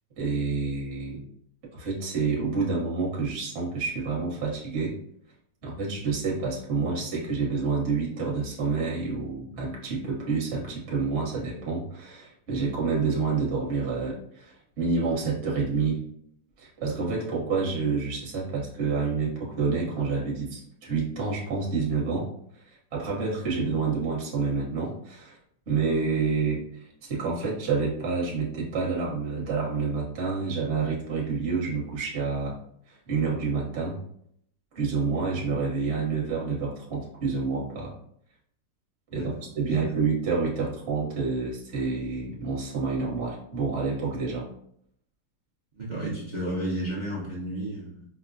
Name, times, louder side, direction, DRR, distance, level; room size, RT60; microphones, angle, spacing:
voice 1, 0.2-1.2 1.7-5.0 5.6-16.0 16.6-22.3 22.7-25.4 25.7-26.6 27.0-32.5 32.9-34.0 34.7-37.9 39.1-44.5, right 4 dB, 45° right, -4 dB, 1.1 m, -28 dB
voice 2, 39.1-39.8 45.7-48.1, right 1 dB, 65° right, -6 dB, 0.4 m, -33 dB
5.2 x 2.1 x 2.5 m, 0.69 s
omnidirectional pair, 1.9 m